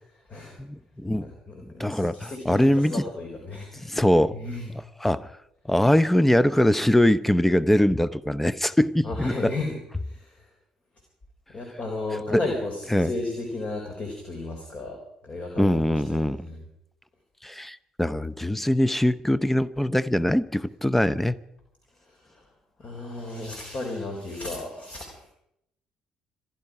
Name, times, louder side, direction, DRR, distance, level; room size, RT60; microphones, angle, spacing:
voice 1, 0.1-0.6 1.2-4.0 4.3-4.7 9.0-10.5 11.5-15.0 15.2-15.7 16.1-16.6 22.0-22.4 22.8-25.3, left 2 dB, 40° left, 3.8 m, -34 dB
voice 2, 0.6-1.3 1.8-2.9 3.8-4.4 5.0-5.3 5.7-9.5 12.3-12.4 12.9-13.1 15.6-16.5 17.4-21.4, left 1 dB, 5° left, 0.8 m, -22 dB
26.5 x 11.0 x 4.9 m
figure-of-eight pair, 50°, 3 cm